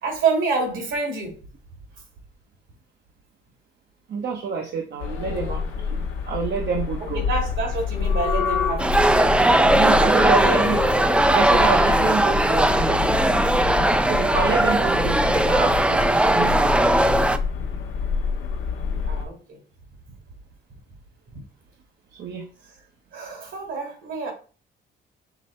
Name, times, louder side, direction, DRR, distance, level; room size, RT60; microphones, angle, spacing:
voice 1, 0.0-1.4 7.0-9.4 9.9-10.7 14.5-14.9 17.6-17.7 19.1-19.6 21.3-21.4 22.6-22.8 23.1-24.3, right 4 dB, 75° right, 2.1 m, -28 dB
voice 2, 4.1-7.2 9.7-10.8 11.3-17.0 22.1-22.5, right 6 dB, 55° right, 0.8 m, -28 dB
sound 1, 5.0-19.2, left 5 dB, 85° left, 0.8 m, -27 dB
sound 2, 8.8-17.4, right 1 dB, 5° right, 0.3 m, -19 dB
6.0 x 2.1 x 4.2 m
cardioid pair, 90°, 20 cm